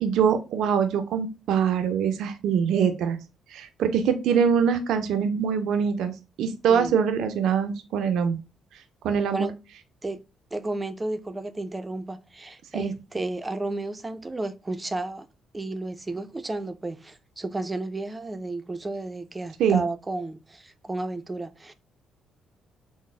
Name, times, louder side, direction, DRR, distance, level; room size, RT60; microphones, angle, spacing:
voice 1, 0.0-3.2 3.5-6.1 6.4-8.4 9.0-9.5 12.7-12.9 19.6-19.8, right 7 dB, 80° right, 0.4 m, -23 dB
voice 2, 10.5-15.3 15.5-21.7, right 2 dB, 20° right, 0.4 m, -32 dB
3.9 x 2.0 x 3.5 m
cardioid pair, 90°, 0 cm